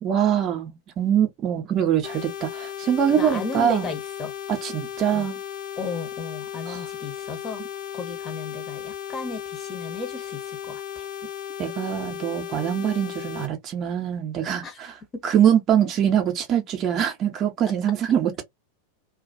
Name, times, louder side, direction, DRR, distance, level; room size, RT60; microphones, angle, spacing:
voice 1, 0.0-3.9 4.5-5.4 6.7-6.8 11.6-14.9 15.2-18.4, right 9 dB, 35° right, 0.6 m, -23 dB
sound 1, 2.0-13.5, left 10 dB, 50° left, 0.9 m, -35 dB
voice 2, 3.1-4.3 5.1-5.3 5.8-7.6 7.9-11.1 14.6-14.8 15.1-15.2, left 4 dB, 20° left, 0.8 m, -34 dB
2.3 x 2.2 x 2.4 m
figure-of-eight pair, 90°, 0 cm